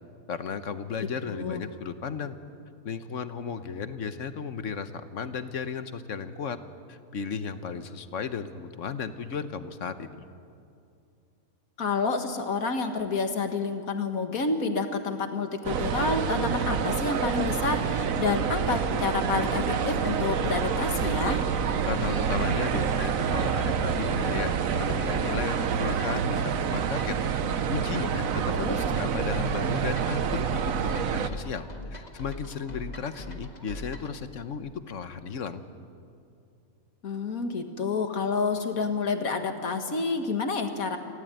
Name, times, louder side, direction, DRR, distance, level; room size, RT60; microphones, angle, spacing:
voice 1, 0.3-2.4 2.8-6.6 6.9-10.3 21.8-27.2 27.7-35.6, left 6 dB, 65° left, 11 dB, 1.3 m, -35 dB
voice 2, 1.0-1.6 11.8-21.4 28.5-28.8 37.0-41.0, left 4 dB, 80° left, 6 dB, 2.1 m, -29 dB
sound 1, 15.6-31.3, right 7 dB, 70° right, 1.3 m, -27 dB
sound 2, 18.3-34.2, left 1 dB, 30° left, 1.9 m, -43 dB
27.0 x 16.5 x 9.1 m, 2.5 s
omnidirectional pair, 1.5 m